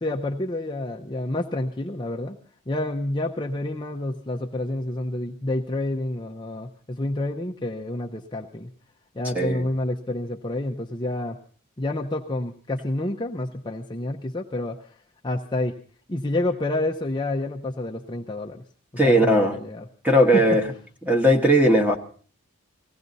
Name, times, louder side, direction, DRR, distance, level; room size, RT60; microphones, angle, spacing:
voice 1, 0.0-2.4 2.7-8.7 9.2-11.4 11.8-14.8 15.2-15.8 16.1-18.6 19.0-19.9 20.3-20.4, left 1 dB, 20° left, 1 dB, 0.7 m, -28 dB
voice 2, 19.0-19.6 20.0-20.6 21.0-22.0, equal, 5° right, 3 dB, 1.4 m, -18 dB
20.0 x 16.0 x 4.1 m, 0.42 s
head